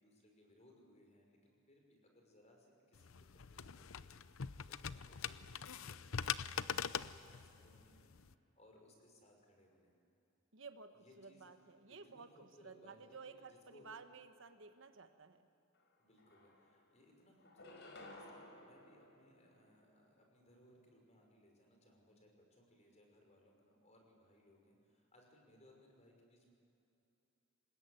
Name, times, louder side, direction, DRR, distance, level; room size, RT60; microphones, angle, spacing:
voice 1, 0.0-6.4 6.7-10.0 10.9-11.5 12.0-12.3 12.6-13.9 16.0-26.5, left 1 dB, 35° left, 1 dB, 5.8 m, -67 dB
sound 1, 2.9-8.3, left 7 dB, 80° left, 0.7 m, -43 dB
voice 2, 10.5-15.5, right 4 dB, 65° right, 8 dB, 1.3 m, -55 dB
sound 2, 15.8-15.9 16.2-17.0 17.4-20.0, left 2 dB, 60° left, 4.8 m, -57 dB
26.0 x 21.0 x 9.6 m, 2.9 s
head